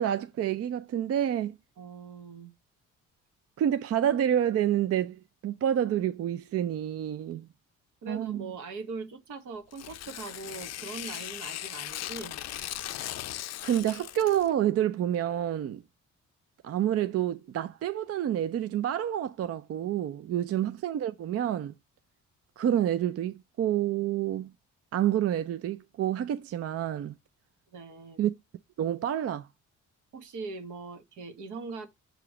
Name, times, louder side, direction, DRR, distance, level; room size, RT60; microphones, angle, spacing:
voice 1, 0.0-1.6 3.6-5.2 5.4-7.5 8.1-8.5 13.6-15.8 16.6-21.7 22.6-24.5 24.9-27.1 28.2-28.3 28.8-29.5, right 11 dB, 55° right, 0.5 m, -28 dB
voice 2, 1.8-2.5 8.0-12.4 20.3-20.5 27.7-28.2 30.1-31.9, right 4 dB, 80° right, 1.4 m, -41 dB
Tearing, 9.7-14.5, left 13 dB, 60° left, 0.5 m, -38 dB
6.8 x 3.0 x 4.8 m
cardioid pair, 90°, 30 cm